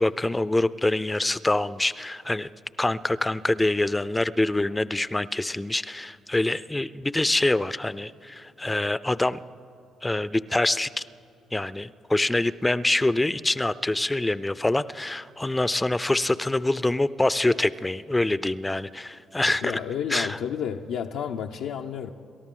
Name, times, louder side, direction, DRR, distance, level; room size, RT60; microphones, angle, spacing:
voice 1, 0.0-2.5 2.8-9.4 10.0-11.0 11.5-19.8 20.1-20.4, left 2 dB, 15° left, 16 dB, 0.4 m, -25 dB
voice 2, 19.6-22.1, left 8 dB, 90° left, 2 dB, 0.5 m, -31 dB
29.0 x 13.0 x 3.7 m, 2.6 s
cardioid pair, 90°, 0 cm